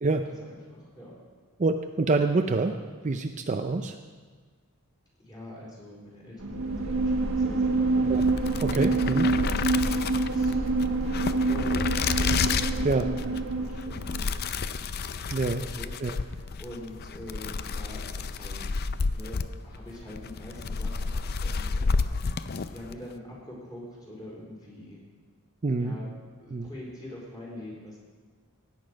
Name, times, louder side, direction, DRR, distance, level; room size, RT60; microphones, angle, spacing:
voice 1, 0.1-1.1 5.2-8.1 8.8-10.6 11.1-14.8 15.5-18.7 19.1-25.0 25.8-26.1 26.4-28.0, left 1 dB, 20° left, -4 dB, 4.4 m, -44 dB
voice 2, 1.6-2.8 3.0-3.9 8.1-8.2 8.6-9.3 12.8-13.0 15.3-15.6 16.0-16.1 25.6-26.0 26.5-26.7, right 3 dB, 35° right, 6 dB, 0.5 m, -26 dB
sound 1, 6.4-14.2, right 3 dB, 70° right, 1.5 m, -26 dB
sound 2, 8.1-23.0, left 4 dB, 45° left, 0.5 m, -31 dB
16.5 x 9.8 x 5.2 m, 1.5 s
head